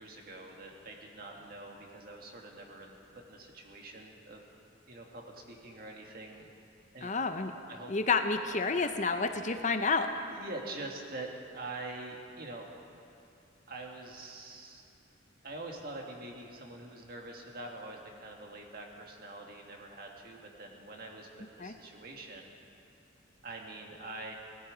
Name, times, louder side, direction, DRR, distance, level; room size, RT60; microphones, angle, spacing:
voice 1, 0.0-4.5 4.9-6.5 6.9-7.1 7.7-7.9 10.2-11.3 11.5-12.7 13.7-14.8 15.4-22.5 23.4-24.3, right 2 dB, 50° right, 1 dB, 1.8 m, -45 dB
voice 2, 7.0-7.5 7.9-10.1 21.6-21.7, left 4 dB, 40° left, 7 dB, 0.7 m, -29 dB
19.0 x 13.5 x 5.0 m, 2.6 s
head